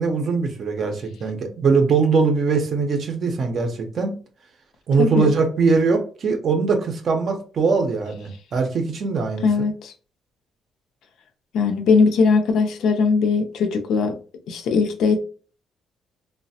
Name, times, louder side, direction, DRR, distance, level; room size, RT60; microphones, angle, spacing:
voice 1, 0.0-4.2 4.9-9.5, right 4 dB, 40° right, 0.5 m, -21 dB
voice 2, 5.0-5.3 9.4-9.9 11.5-14.2 14.5-15.2, left 4 dB, 65° left, 0.4 m, -19 dB
3.1 x 2.0 x 2.6 m
cardioid pair, 165°, 0 cm